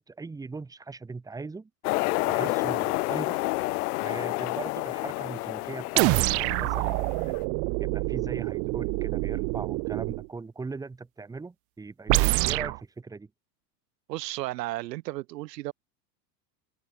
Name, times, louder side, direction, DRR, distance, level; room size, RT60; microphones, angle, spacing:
voice 1, 0.0-1.7 2.2-3.4 4.0-7.4 7.8-13.3, right 4 dB, 5° right, 1.5 m, -39 dB
sound 1, 1.8-7.4, left 22 dB, 65° left, 2.0 m, -29 dB
sound 2, 6.0-10.3 12.1-12.8, right 34 dB, 30° right, 0.5 m, -26 dB
voice 2, 14.1-15.7, right 17 dB, 80° right, 3.6 m, -34 dB
supercardioid pair, 165°, 48 cm